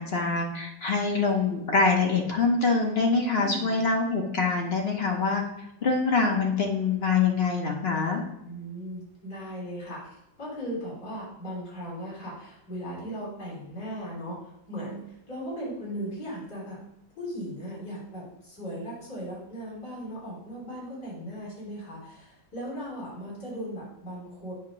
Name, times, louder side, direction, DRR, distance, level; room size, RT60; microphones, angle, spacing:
voice 1, 0.0-5.4 5.8-8.2, left 4 dB, 45° left, 1 dB, 1.0 m, -25 dB
voice 2, 3.3-3.9 8.4-10.0 10.4-14.4 14.7-15.0 15.3-16.8 17.2-24.5, equal, 70° left, -7 dB, 3.9 m, -37 dB
8.6 x 2.9 x 6.1 m, 0.82 s
omnidirectional pair, 1.8 m